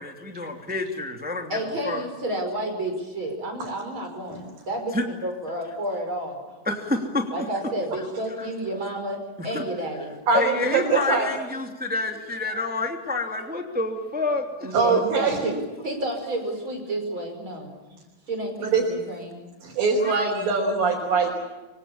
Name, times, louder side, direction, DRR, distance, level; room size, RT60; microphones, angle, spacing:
voice 1, 0.0-1.6 1.8-2.1 4.9-5.0 6.7-7.3 8.4-8.5 9.4-9.6 10.3-14.7 20.0-20.4 21.2-21.3, left 3 dB, 5° right, 3 dB, 2.2 m, -28 dB
voice 2, 1.5-6.6 7.3-10.1 14.6-15.6 15.8-18.0 18.3-19.4, right 1 dB, 35° right, 3 dB, 6.1 m, -31 dB
voice 3, 10.3-11.3 14.7-15.4 18.7-18.9 19.6-21.3, right 4 dB, 80° right, -2 dB, 6.2 m, -22 dB
25.5 x 25.5 x 7.3 m, 1.1 s
omnidirectional pair, 4.0 m